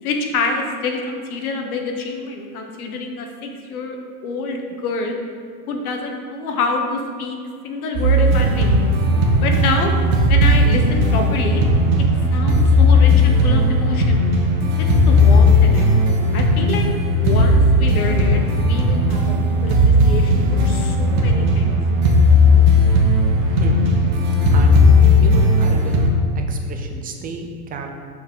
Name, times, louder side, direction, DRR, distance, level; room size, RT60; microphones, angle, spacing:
voice 1, 0.0-4.0 4.2-5.2 5.7-7.4 7.6-8.7 9.4-9.9 10.3-11.6 12.3-14.2 14.8-15.9 16.3-16.9 17.2-21.8, left 3 dB, 80° left, 3 dB, 1.2 m, -26 dB
sound 1, 7.9-26.1, left 1 dB, 50° right, 1.3 m, -15 dB
voice 2, 24.5-24.8 25.2-26.0 26.3-27.9, right 4 dB, 20° right, 4 dB, 0.6 m, -32 dB
6.6 x 5.9 x 3.8 m, 2.2 s
supercardioid pair, 125°, 43 cm